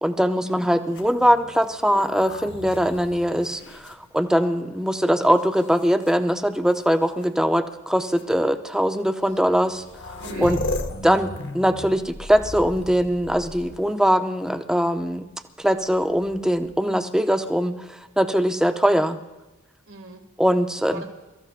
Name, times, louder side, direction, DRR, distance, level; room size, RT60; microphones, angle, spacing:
voice 1, 0.0-9.8 10.4-10.6 11.0-15.2 15.6-17.7 18.2-19.2 20.4-21.0, equal, 5° right, 6 dB, 0.6 m, -21 dB
sound 1, 0.8-4.7 5.4-6.1 7.2-7.3 8.0-8.2 9.4-9.5 9.6-14.1 16.0-16.7, left 2 dB, 60° left, 0.9 m, -36 dB
voice 2, 10.2-11.2 19.9-20.2 20.9-21.0, right 3 dB, 80° right, 3 dB, 2.1 m, -40 dB
28.0 x 14.0 x 2.5 m, 1.1 s
head